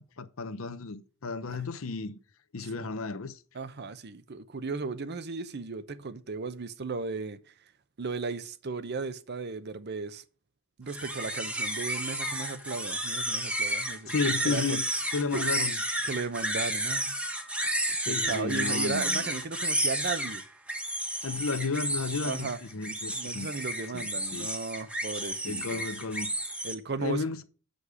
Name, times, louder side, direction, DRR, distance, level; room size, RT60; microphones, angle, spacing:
voice 1, 0.0-2.2 2.5-3.4 14.1-14.8 15.1-15.8 18.0-19.4 21.2-23.5 23.9-24.5 25.4-26.3 27.0-27.4, left 4 dB, 80° left, 0.8 m, -33 dB
voice 2, 3.5-7.4 8.0-10.2 10.8-14.8 15.3-15.4 16.0-17.1 18.1-20.4 22.2-22.6 23.1-25.8 26.6-27.2, right 4 dB, 55° right, 0.7 m, -35 dB
sound 1, 10.9-26.7, right 1 dB, 5° right, 1.1 m, -32 dB
8.1 x 5.3 x 4.9 m
head